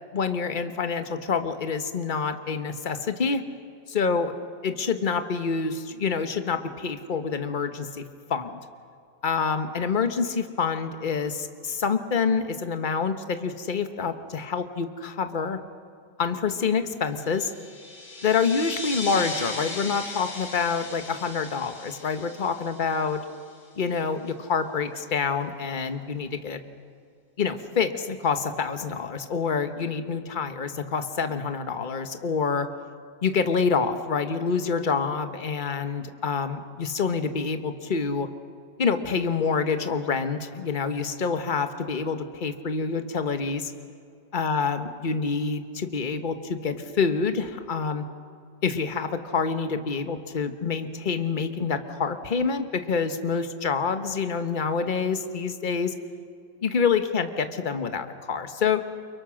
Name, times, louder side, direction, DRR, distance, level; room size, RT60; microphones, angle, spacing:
voice 1, 0.1-3.4 3.9-4.3 4.6-8.0 8.3-8.6 9.2-15.6 16.2-17.5 18.2-23.2 23.8-26.6 27.4-32.7 33.2-38.3 38.8-43.7 44.3-48.0 48.6-55.9 56.6-58.8, left 5 dB, 30° left, 8 dB, 1.2 m, -27 dB
sound 1, 17.3-23.6, left 2 dB, 70° left, 6.1 m, -37 dB
29.0 x 23.5 x 6.4 m, 2.4 s
omnidirectional pair, 1.9 m